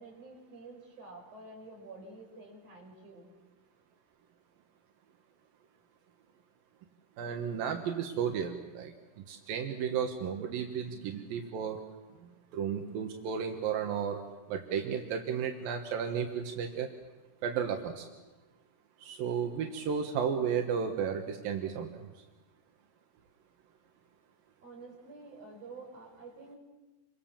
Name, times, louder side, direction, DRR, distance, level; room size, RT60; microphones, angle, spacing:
voice 1, 0.0-3.3 24.6-26.6, right 3 dB, 45° right, 0 dB, 6.6 m, -49 dB
voice 2, 7.2-11.8 12.2-14.2 14.5-16.9 17.4-18.1 19.0-22.1, right 7 dB, 85° right, 3 dB, 3.2 m, -33 dB
28.5 x 24.5 x 7.4 m, 1.2 s
omnidirectional pair, 4.0 m